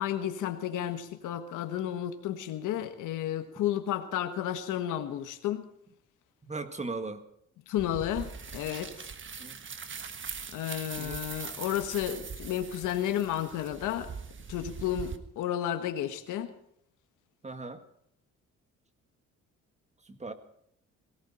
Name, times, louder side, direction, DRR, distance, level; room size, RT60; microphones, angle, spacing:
voice 1, 0.0-5.6 7.7-8.9 10.5-14.1 14.5-16.5, left 11 dB, 90° left, 7 dB, 1.4 m, -32 dB
voice 2, 6.5-7.3 9.4-9.6 11.0-11.3 17.4-17.8 20.1-20.3, right 3 dB, 20° right, 8 dB, 1.8 m, -38 dB
sound 1, 7.8-15.2, right 6 dB, 40° right, 1.4 m, -41 dB
18.5 x 17.5 x 4.3 m, 0.71 s
cardioid pair, 90°, 30 cm